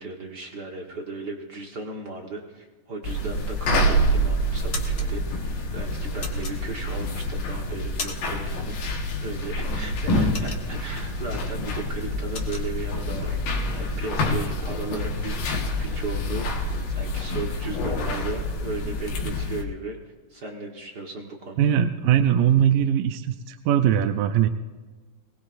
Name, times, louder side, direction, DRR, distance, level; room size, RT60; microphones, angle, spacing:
voice 1, 0.0-21.7, right 3 dB, 65° right, 0 dB, 1.0 m, -36 dB
sound 1, 3.0-19.6, equal, 85° left, 3.2 m, -27 dB
sound 2, 4.7-5.1 6.2-7.1 7.5-8.5 8.7-9.0 9.4-11.1 11.4-11.6 11.9-12.7, left 4 dB, 55° left, 1.0 m, -36 dB
voice 2, 21.6-24.5, right 9 dB, 80° right, 7 dB, 2.2 m, -21 dB
23.0 x 19.0 x 2.5 m, 1.3 s
omnidirectional pair, 4.0 m